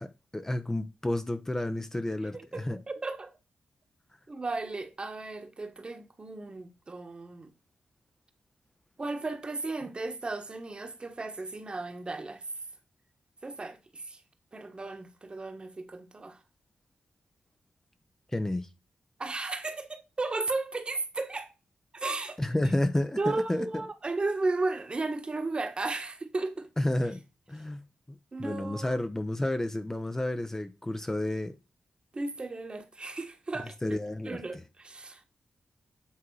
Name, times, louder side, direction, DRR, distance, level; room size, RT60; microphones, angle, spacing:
voice 1, 0.0-2.8 18.3-18.7 22.4-23.8 26.8-27.2 27.5-27.8 28.4-31.5 33.8-34.4, left 1 dB, 15° left, 0.7 m, -31 dB
voice 2, 2.3-3.3 4.3-7.5 9.0-12.4 13.4-14.2 14.5-16.4 19.2-21.5 21.9-22.4 23.2-26.7 28.3-29.0 32.1-34.0 34.2-35.3, right 3 dB, 35° right, 1.3 m, -35 dB
8.5 x 3.7 x 4.7 m
cardioid pair, 65°, 3 cm